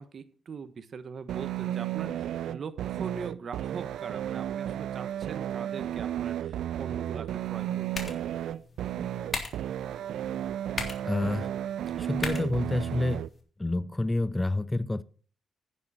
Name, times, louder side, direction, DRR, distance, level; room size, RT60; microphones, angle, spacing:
voice 1, 0.0-8.1, right 6 dB, 55° right, 1.3 m, -41 dB
sound 1, 1.3-13.3, right 11 dB, 80° right, 0.5 m, -33 dB
sound 2, 7.4-13.4, left 3 dB, 40° left, 3.3 m, -40 dB
voice 2, 11.0-11.5 11.9-13.2 13.6-15.0, left 2 dB, 15° left, 0.6 m, -28 dB
10.5 x 10.0 x 4.3 m
cardioid pair, 70°, 0 cm